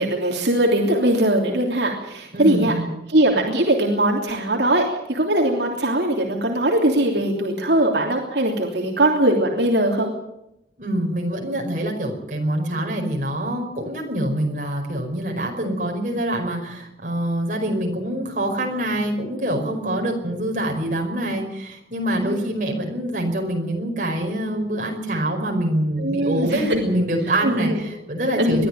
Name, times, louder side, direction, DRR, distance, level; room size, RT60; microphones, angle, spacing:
voice 1, 0.0-2.7 3.1-4.8 5.1-10.1 22.2-22.5 26.0-26.8 27.4-27.8 28.4-28.7, right 1 dB, 75° right, 0 dB, 3.1 m, -20 dB
voice 2, 2.3-2.9 10.8-28.7, right 1 dB, 45° right, 1 dB, 5.2 m, -25 dB
22.0 x 13.0 x 9.2 m, 0.87 s
head